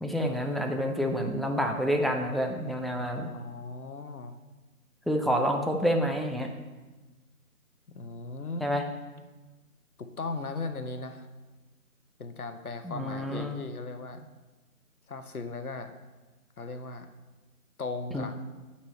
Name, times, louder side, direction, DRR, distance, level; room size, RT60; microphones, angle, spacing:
voice 1, 0.0-3.3 5.1-6.5 8.6-8.8 12.8-13.6 18.1-18.3, equal, ahead, 2 dB, 0.4 m, -28 dB
voice 2, 3.3-4.4 7.9-8.7 10.0-11.3 12.2-14.3 15.1-15.9 16.6-17.1 17.8-18.4, left 3 dB, 75° left, 8 dB, 0.8 m, -37 dB
8.8 x 4.2 x 4.3 m, 1.2 s
figure-of-eight pair, 175°, 45 cm